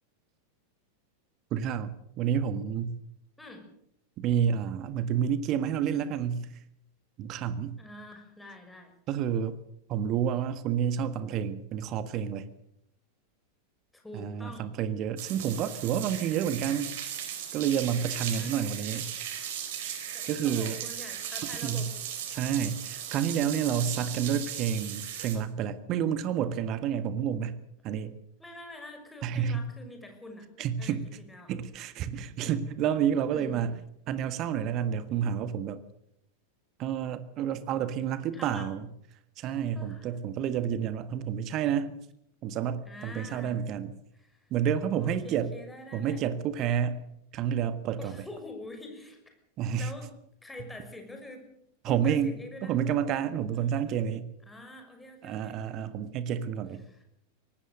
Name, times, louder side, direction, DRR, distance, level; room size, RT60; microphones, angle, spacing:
voice 1, 1.5-3.0 4.2-6.5 7.2-7.8 9.1-9.6 9.9-12.5 14.1-16.9 17.5-19.1 19.8-20.0 20.3-20.8 21.6-21.9 22.3-28.2 29.2-29.7 30.6-31.1 31.5-33.7 34.1-35.8 36.8-38.9 39.4-41.9 42.4-43.9 44.5-45.5 45.9-47.0 47.3-48.1 49.6-49.9 51.8-52.3 52.6-54.3 55.2-56.8, right 8 dB, 35° right, 1.6 m, -29 dB
voice 2, 7.8-8.9 13.9-14.7 18.2-18.6 20.1-21.9 23.7-24.3 28.4-30.5 30.8-31.0 31.3-31.5 33.3-33.7 38.3-38.7 39.7-40.6 42.8-43.6 44.1-44.5 44.9-46.2 48.0-49.4 49.7-50.1 50.4-51.5 51.9-53.0 53.5-54.0 54.5-55.6 56.8-57.0, left 1 dB, 5° left, 5.9 m, -46 dB
sound 1, 15.2-25.4, right 9 dB, 55° right, 4.3 m, -37 dB
24.0 x 18.5 x 6.7 m
figure-of-eight pair, 90°, 0 cm